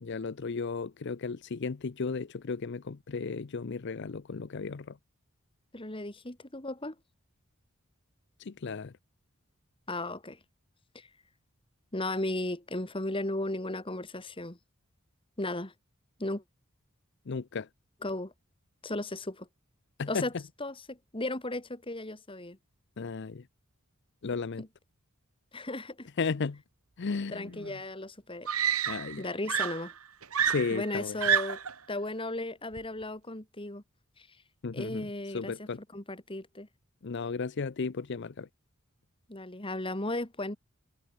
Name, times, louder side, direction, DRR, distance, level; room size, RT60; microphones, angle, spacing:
voice 1, 0.0-5.0 8.4-8.9 17.3-17.7 20.0-20.2 23.0-23.4 24.2-24.6 26.2-26.6 27.0-27.7 28.9-29.3 30.4-31.2 34.6-35.1 35.3-35.8 37.0-38.5, left 4 dB, 55° left, 0.6 m, -34 dB
voice 2, 5.7-7.0 9.9-10.4 10.9-11.1 11.9-14.6 15.4-15.7 16.2-16.4 18.0-18.3 18.8-19.5 20.1-20.3 20.6-22.6 24.6-24.7 25.5-26.1 27.3-28.7 29.2-29.9 30.7-31.6 31.9-33.8 34.2-34.4 34.7-36.7 39.3-40.6, left 2 dB, 25° left, 2.4 m, -35 dB
Screaming, 27.6-27.7 28.5-29.2 29.5-31.8 32.8-33.0, right 8 dB, 85° right, 1.8 m, -29 dB
head